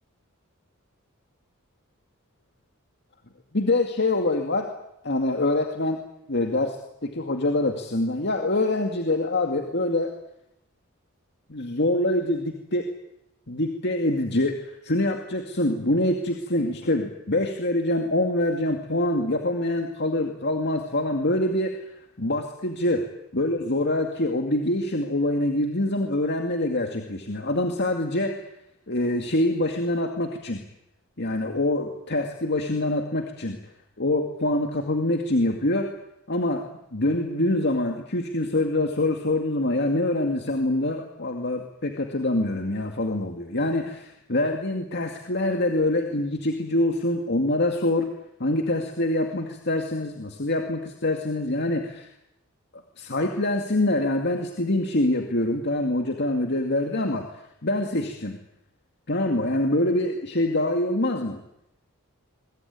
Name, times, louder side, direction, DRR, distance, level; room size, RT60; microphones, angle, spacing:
voice 1, 3.5-4.7 5.0-6.0 6.3-6.8 7.0-10.1 11.5-12.9 13.5-21.8 22.2-23.0 23.3-28.4 28.9-30.6 31.2-33.6 34.0-35.9 36.3-36.6 36.9-48.1 48.4-52.1 53.0-57.3 57.6-58.4 59.1-61.4, left 1 dB, 55° left, 4 dB, 2.2 m, -25 dB
23.0 x 22.5 x 9.6 m, 0.84 s
head